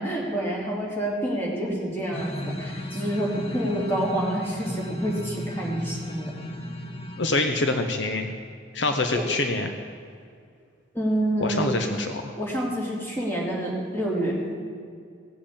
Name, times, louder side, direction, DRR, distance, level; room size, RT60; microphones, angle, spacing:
voice 1, 0.0-6.4 9.1-9.2 10.9-11.7 12.4-14.4, right 1 dB, 10° left, -4 dB, 3.1 m, -28 dB
sound 1, 2.1-7.4, equal, 30° left, 1.3 m, -34 dB
voice 2, 7.2-8.3 8.7-9.7 11.4-12.3, left 2 dB, 65° left, 6 dB, 0.9 m, -25 dB
17.0 x 7.7 x 8.7 m, 2.2 s
head